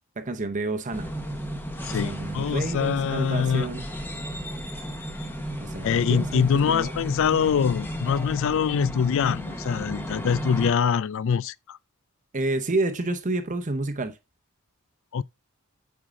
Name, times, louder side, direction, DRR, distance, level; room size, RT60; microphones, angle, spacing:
voice 1, 0.2-1.1 1.9-3.9 5.6-6.9 12.3-14.2, right 2 dB, 35° right, 0.8 m, -29 dB
sound 1, 0.9-10.7, equal, 10° left, 1.0 m, -34 dB
voice 2, 1.9-3.7 5.8-11.8 15.1-15.2, left 7 dB, 60° left, 0.3 m, -24 dB
9.0 x 4.7 x 3.7 m
head